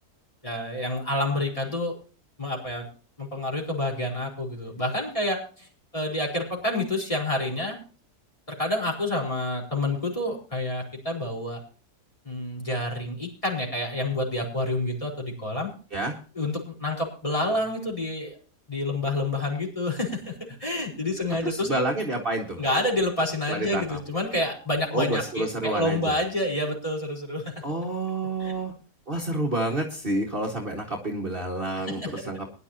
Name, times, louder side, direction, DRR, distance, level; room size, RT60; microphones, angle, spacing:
voice 1, 0.4-2.0 2.4-2.9 3.2-5.7 5.9-7.8 8.6-11.6 12.2-15.7 16.3-18.4 18.7-20.3 20.6-21.7 22.6-27.5 28.4-28.5 31.8-31.9, left 1 dB, 20° left, -1 dB, 4.6 m, -28 dB
voice 2, 21.4-22.6 23.5-24.0 24.9-26.2 27.6-28.7 29.1-32.5, right 2 dB, 35° right, -1 dB, 2.2 m, -29 dB
21.5 x 11.0 x 2.9 m, 0.38 s
omnidirectional pair, 1.7 m